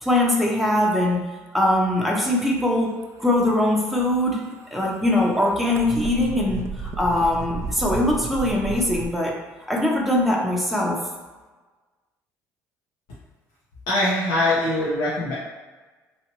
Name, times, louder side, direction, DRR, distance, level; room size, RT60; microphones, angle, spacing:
voice 1, 0.0-4.4 4.7-9.4 9.7-11.0, left 1 dB, ahead, -2 dB, 0.8 m, -22 dB
sound 1, 3.9-9.1, right 5 dB, 40° right, 0.4 m, -34 dB
voice 2, 13.9-15.3, left 1 dB, 75° left, -9 dB, 0.9 m, -22 dB
3.1 x 2.5 x 3.0 m, 1.3 s
hypercardioid pair, 65°, 8 cm